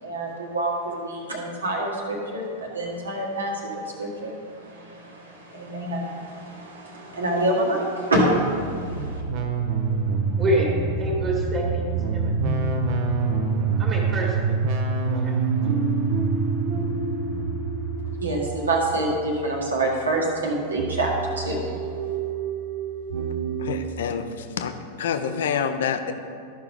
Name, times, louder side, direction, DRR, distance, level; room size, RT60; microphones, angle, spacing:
voice 1, 0.0-9.2 18.2-21.9, right 1 dB, 75° right, -1 dB, 1.5 m, -27 dB
sound 1, 8.6-20.1 20.7-23.8, right 4 dB, 45° right, 0.8 m, -26 dB
voice 2, 10.4-10.7 11.0-12.6 13.8-14.6 15.2-15.4 15.7-15.8, right 1 dB, 30° right, -2 dB, 1.8 m, -27 dB
voice 3, 23.6-24.7 25.0-26.1, left 7 dB, 60° left, 8 dB, 0.5 m, -27 dB
12.5 x 5.6 x 3.5 m, 2.4 s
figure-of-eight pair, 90°, 0 cm